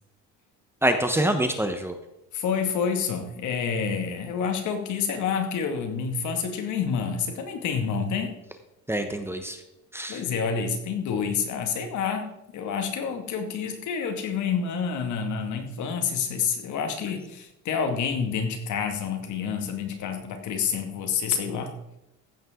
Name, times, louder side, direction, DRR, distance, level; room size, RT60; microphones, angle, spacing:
voice 1, 0.8-1.9 8.9-9.6 9.9-10.2, right 1 dB, 5° right, 7 dB, 1.1 m, -25 dB
voice 2, 2.3-8.4 10.1-21.7, left 6 dB, 65° left, 5 dB, 2.3 m, -28 dB
15.5 x 8.8 x 3.8 m, 0.88 s
cardioid pair, 120°, 32 cm